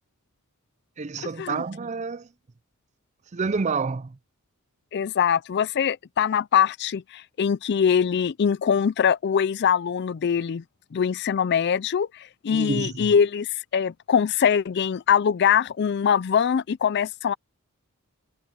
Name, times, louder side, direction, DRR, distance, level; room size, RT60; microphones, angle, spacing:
voice 1, 1.0-2.3 3.3-4.2 12.5-13.1, right 4 dB, 30° right, 0.5 m, -28 dB
voice 2, 4.9-10.6 10.9-17.3, left 7 dB, 50° left, 0.4 m, -23 dB
head